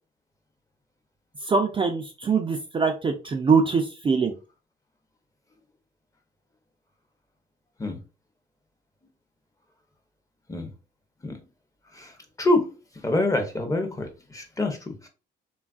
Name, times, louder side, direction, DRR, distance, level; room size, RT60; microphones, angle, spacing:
voice 1, 1.5-4.3, right 5 dB, 25° right, 4 dB, 0.4 m, -23 dB
voice 2, 13.0-15.1, left 2 dB, 15° left, 4 dB, 0.7 m, -26 dB
3.2 x 2.3 x 2.3 m, 0.32 s
cardioid pair, 90°, 20 cm